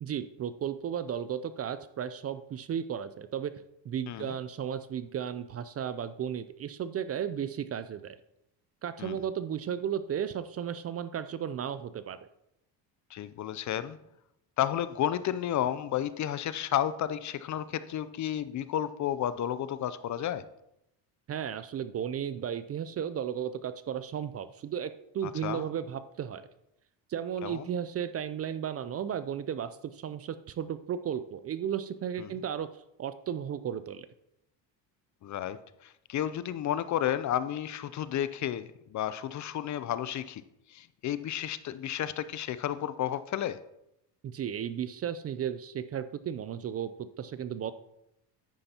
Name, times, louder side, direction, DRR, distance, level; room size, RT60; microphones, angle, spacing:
voice 1, 0.0-3.5 3.9-8.2 8.8-12.2 21.3-26.4 27.1-32.7 33.0-34.1 44.2-46.9 47.2-47.7, right 9 dB, 35° right, 13 dB, 0.4 m, -34 dB
voice 2, 4.1-4.4 9.0-9.2 13.1-14.0 14.6-20.5 25.2-25.6 27.4-27.7 32.2-32.3 35.2-35.6 35.8-40.4 40.7-43.6, left 11 dB, 40° left, 14 dB, 0.5 m, -32 dB
10.0 x 8.6 x 2.9 m, 0.83 s
supercardioid pair, 90°, 45 cm